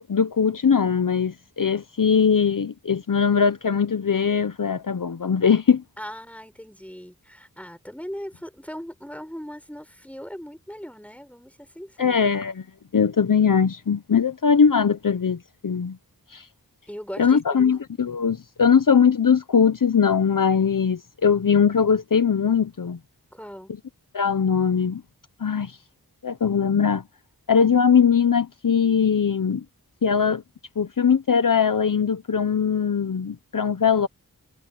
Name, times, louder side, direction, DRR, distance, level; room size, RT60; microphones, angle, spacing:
voice 1, 0.0-5.8 12.0-12.6 12.9-16.0 16.3-16.5 17.2-23.0 24.1-25.0 25.4-25.8 26.2-27.0 27.5-29.6 30.0-30.4 30.8-34.1, left 6 dB, 60° left, 0.8 m, -20 dB
voice 2, 6.0-12.2 16.9-17.8 23.3-23.7, equal, 5° left, 6.9 m, -39 dB
wide cardioid pair, 55°, 36 cm